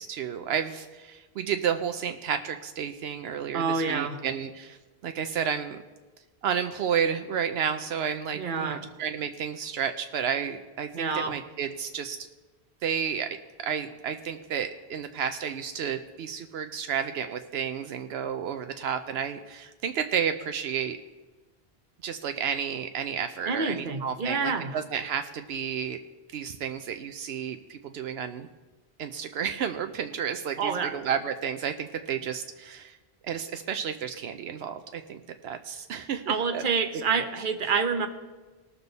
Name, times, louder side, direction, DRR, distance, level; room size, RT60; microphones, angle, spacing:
voice 1, 0.0-4.8 5.0-5.8 6.4-12.2 12.8-13.3 13.6-21.0 22.0-26.0 26.3-28.5 29.0-33.0 33.2-36.6, right 8 dB, 80° right, 7 dB, 0.8 m, -31 dB
voice 2, 3.5-4.2 8.3-8.9 10.9-11.4 23.5-24.8 30.6-30.9 36.3-38.1, right 5 dB, 55° right, 6 dB, 1.1 m, -28 dB
19.5 x 6.9 x 4.0 m, 1.3 s
omnidirectional pair, 1.0 m